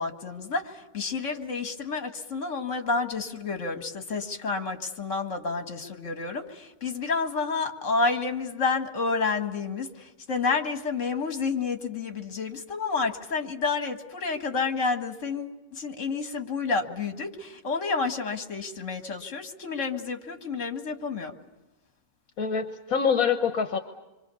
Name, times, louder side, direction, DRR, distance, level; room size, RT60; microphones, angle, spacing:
voice 1, 0.0-21.3, left 4 dB, 60° left, 6 dB, 2.2 m, -30 dB
voice 2, 22.4-23.8, left 6 dB, 80° left, 7 dB, 1.6 m, -25 dB
27.0 x 24.5 x 7.0 m, 1.1 s
omnidirectional pair, 1.5 m